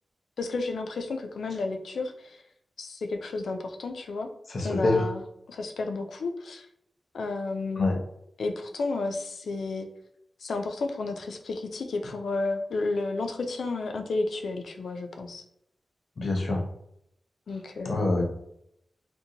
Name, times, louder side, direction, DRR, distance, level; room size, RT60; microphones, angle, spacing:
voice 1, 0.4-2.4 2.8-4.3 4.6-5.2 5.5-6.7 7.1-7.9 8.4-9.9 10.4-15.4 17.5-18.2, left 3 dB, 90° left, 4 dB, 0.3 m, -32 dB
voice 2, 4.5-5.1 7.8-8.0 16.2-16.6 17.8-18.2, left 2 dB, 60° left, 0 dB, 0.7 m, -25 dB
2.6 x 2.1 x 2.8 m, 0.75 s
wide cardioid pair, 115°, 0 cm